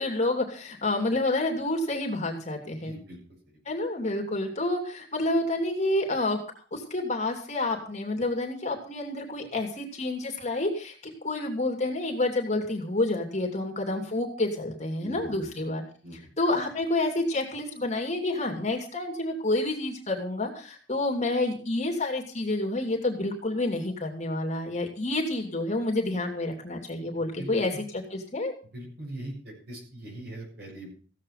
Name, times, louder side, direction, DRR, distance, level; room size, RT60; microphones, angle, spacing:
voice 1, 0.0-2.9 3.6-6.4 6.7-15.8 16.4-28.5, left 2 dB, 40° left, 1 dB, 3.0 m, -29 dB
voice 2, 2.8-3.2 15.0-15.5 16.0-16.3 27.4-27.8 28.7-30.9, right 1 dB, 65° right, -2 dB, 7.8 m, -41 dB
16.0 x 8.5 x 5.8 m, 0.41 s
head